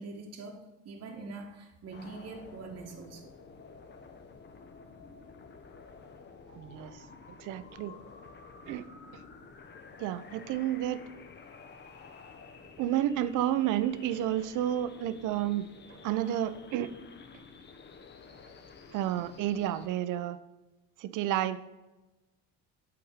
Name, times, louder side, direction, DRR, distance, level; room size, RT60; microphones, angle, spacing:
voice 1, 0.0-3.3, right 3 dB, 40° right, 1 dB, 1.1 m, -44 dB
sound 1, 1.9-19.9, left 4 dB, 30° left, 0.8 m, -51 dB
voice 2, 6.5-7.0 7.4-7.9 8.7-8.8 10.0-11.0 12.8-16.9 18.9-20.4 21.0-21.7, right 12 dB, 60° right, 13 dB, 0.6 m, -31 dB
7.8 x 3.5 x 4.8 m, 1.1 s
supercardioid pair, 85°, 36 cm